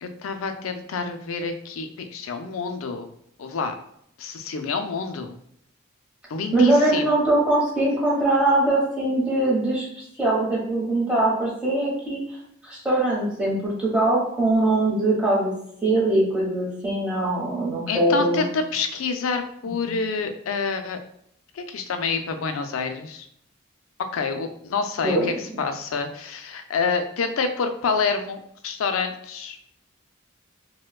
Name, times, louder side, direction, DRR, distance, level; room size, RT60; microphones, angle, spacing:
voice 1, 0.0-3.1 3.4-3.7 4.2-5.4 6.3-7.2 17.9-21.0 21.5-23.3 24.1-29.6, left 5 dB, 85° left, 7 dB, 0.4 m, -28 dB
voice 2, 6.5-12.2 12.6-15.5 15.8-18.4 19.7-20.0 25.0-25.6, right 2 dB, 5° right, -6 dB, 1.1 m, -22 dB
4.3 x 2.2 x 2.3 m, 0.70 s
head